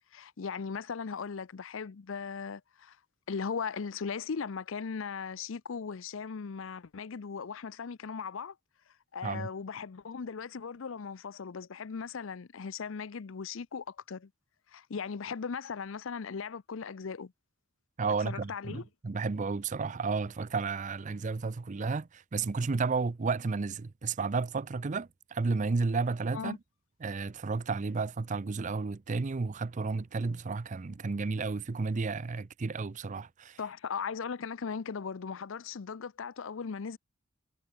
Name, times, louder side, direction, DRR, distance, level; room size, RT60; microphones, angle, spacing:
voice 1, 0.1-3.0 3.3-8.6 9.1-14.3 14.7-17.3 18.2-18.8 26.3-26.6 33.6-37.0, left 5 dB, 65° left, 0.6 m, -38 dB
voice 2, 18.0-26.6 27.0-33.6, right 4 dB, 35° right, 0.5 m, -32 dB
head